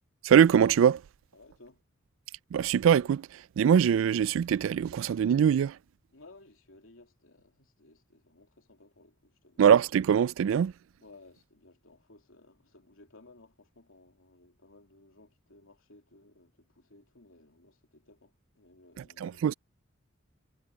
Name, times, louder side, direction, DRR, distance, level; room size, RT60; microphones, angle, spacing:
voice 1, 0.2-1.0 2.5-5.8 9.6-10.7 19.0-19.5, right 8 dB, 70° right, 0.3 m, -23 dB
voice 2, 1.3-1.8 6.1-9.7 11.0-19.6, left 2 dB, 85° left, 2.9 m, -58 dB
head